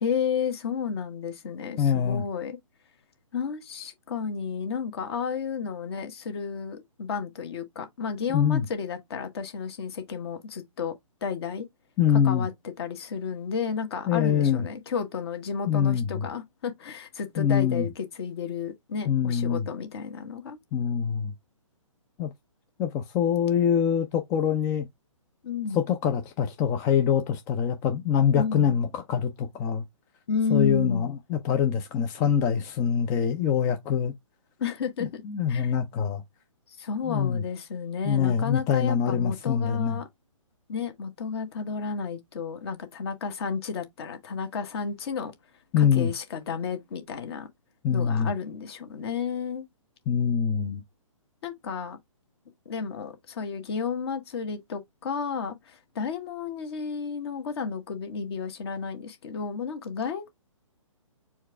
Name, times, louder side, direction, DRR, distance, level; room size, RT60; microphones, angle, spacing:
voice 1, 0.0-2.6 3.3-10.9 11.2-11.7 12.1-12.5 12.8-20.6 25.4-25.8 28.4-28.7 30.3-31.1 34.6-35.2 35.5-35.7 36.7-40.1 40.7-45.3 45.8-47.5 47.9-49.6 51.4-52.0 52.6-60.3, left 6 dB, 50° left, 1.3 m, -32 dB
voice 2, 1.8-2.2 8.3-8.6 12.0-12.5 14.1-14.6 15.7-16.2 17.4-17.8 19.1-19.7 20.7-21.3 22.2-22.3 22.8-24.9 25.7-29.8 30.5-34.1 35.0-36.2 37.1-37.4 38.0-40.0 45.7-46.1 47.8-48.3 50.1-50.8, left 8 dB, 15° left, 0.4 m, -24 dB
4.5 x 2.3 x 4.3 m
hypercardioid pair, 140°, 17 cm